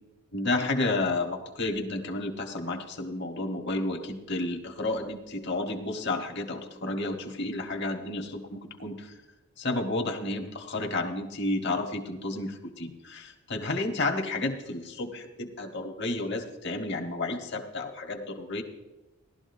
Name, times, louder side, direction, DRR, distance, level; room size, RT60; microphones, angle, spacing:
voice 1, 0.3-9.2 9.6-18.6, left 2 dB, 50° left, 2 dB, 1.4 m, -31 dB
17.5 x 12.5 x 2.7 m, 1.1 s
head